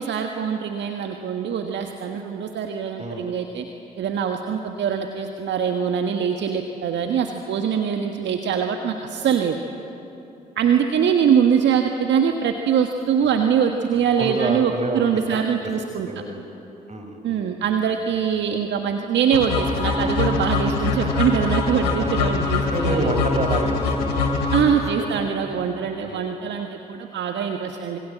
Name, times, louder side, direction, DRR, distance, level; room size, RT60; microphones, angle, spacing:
voice 1, 0.0-3.6 4.0-9.6 10.6-16.1 17.2-23.1 24.5-28.0, right 7 dB, 60° right, 4 dB, 1.6 m, -23 dB
voice 2, 14.2-15.0 15.3-15.4 16.1-16.4 16.9-17.4 22.0-22.1 22.7-24.7 25.0-25.3 26.0-26.2, right 2 dB, 35° right, 6 dB, 4.6 m, -28 dB
sound 1, 19.3-25.3, left 4 dB, 80° left, 2.8 m, -23 dB
26.5 x 23.5 x 7.6 m, 3.0 s
hypercardioid pair, 45°, 21 cm